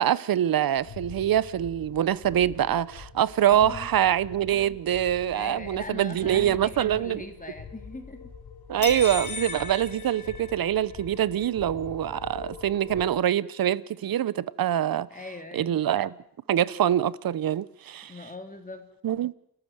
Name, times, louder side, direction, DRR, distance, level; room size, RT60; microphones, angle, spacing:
voice 1, 0.0-7.2 8.7-15.1 15.5-16.1 16.5-18.1 19.0-19.3, right 11 dB, 70° right, 0.9 m, -24 dB
sound 1, 0.8-13.1, left 6 dB, 80° left, 3.8 m, -44 dB
voice 2, 3.5-3.9 5.3-8.3 15.1-15.8 18.1-18.9, left 2 dB, 20° left, 3.3 m, -40 dB
sound 2, 8.8-11.0, left 5 dB, 50° left, 2.0 m, -36 dB
29.5 x 13.0 x 8.1 m
cardioid pair, 80°, 37 cm